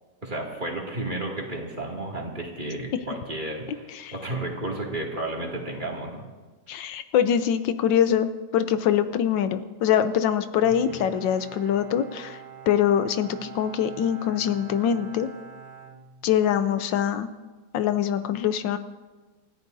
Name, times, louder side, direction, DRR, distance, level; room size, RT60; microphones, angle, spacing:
voice 1, 0.2-6.2 10.9-11.0, right 2 dB, 25° right, -2 dB, 2.6 m, -32 dB
voice 2, 6.7-8.3 8.5-12.4 12.7-15.3 16.2-17.3 17.7-18.8, left 9 dB, 80° left, 10 dB, 1.4 m, -23 dB
Bowed string instrument, 10.6-16.7, right 7 dB, 85° right, 2.0 m, -45 dB
29.5 x 14.0 x 2.7 m, 1.3 s
omnidirectional pair, 2.0 m